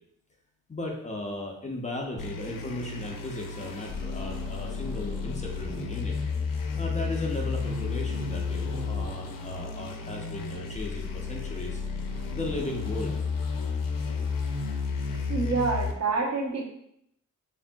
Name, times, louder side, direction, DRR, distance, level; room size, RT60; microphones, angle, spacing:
voice 1, 0.7-6.2 6.8-11.8 12.3-13.2, left 1 dB, 20° left, 0 dB, 0.5 m, -36 dB
sound 1, 2.2-15.9, left 4 dB, 80° left, 0.5 m, -32 dB
voice 2, 15.3-16.7, right 4 dB, 50° right, -1 dB, 0.8 m, -27 dB
3.4 x 2.5 x 2.2 m, 0.76 s
cardioid pair, 65°, 33 cm